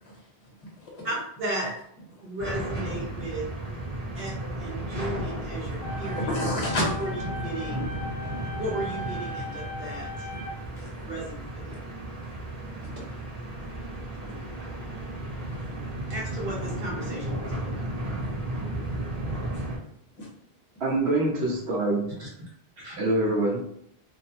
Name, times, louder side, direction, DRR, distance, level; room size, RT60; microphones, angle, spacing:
voice 1, 0.0-1.2 1.6-1.7 5.6-5.7 6.1-7.1 10.3-10.4 10.7-11.2 11.7-11.8 12.2-12.3 14.2-14.3 15.4-15.5 18.2-18.3 19.2-19.7 20.2-20.3, left 1 dB, 35° left, -3 dB, 0.8 m, -33 dB
voice 2, 1.0-1.7 2.2-3.8 4.2-6.3 6.8-7.1 7.4-7.9 8.6-10.3 11.1-11.8 16.1-17.9 22.2-22.3 22.8-23.0, right 1 dB, 65° right, -3 dB, 1.0 m, -35 dB
sound 1, 2.4-19.8, right 1 dB, 30° right, 1.0 m, -34 dB
sound 2, 5.8-10.8, equal, 5° right, 0.5 m, -38 dB
voice 3, 20.8-22.1 23.0-23.6, right 2 dB, 85° right, -1 dB, 0.9 m, -25 dB
2.5 x 2.0 x 2.7 m, 0.67 s
omnidirectional pair, 1.1 m